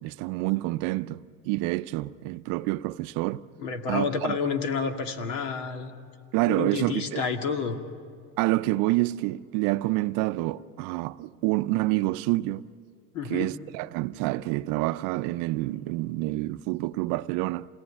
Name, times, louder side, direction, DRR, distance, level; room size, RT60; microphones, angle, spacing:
voice 1, 0.0-3.4 3.9-4.4 6.3-7.2 8.4-12.6 13.3-17.7, right 19 dB, 60° right, 0.6 m, -28 dB
voice 2, 3.6-5.9 6.5-7.8 13.1-13.5, left 5 dB, 80° left, 2.2 m, -29 dB
27.5 x 18.5 x 9.9 m
supercardioid pair, 120°, 37 cm